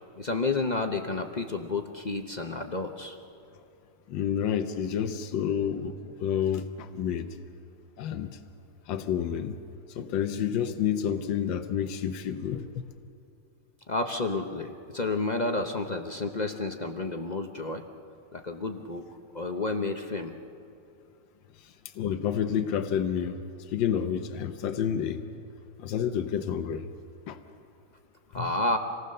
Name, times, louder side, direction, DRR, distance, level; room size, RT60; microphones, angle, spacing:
voice 1, 0.2-3.2 13.9-17.8 18.3-19.0 19.3-20.3 28.3-28.8, left 3 dB, 40° left, 5 dB, 0.6 m, -30 dB
voice 2, 4.1-7.3 8.0-8.3 8.9-9.6 9.9-12.7 22.0-23.4 23.7-25.2 25.8-26.8 27.3-27.4 28.3-28.5, left 8 dB, 85° left, 8 dB, 1.6 m, -29 dB
26.5 x 19.0 x 6.6 m, 2.7 s
omnidirectional pair, 2.0 m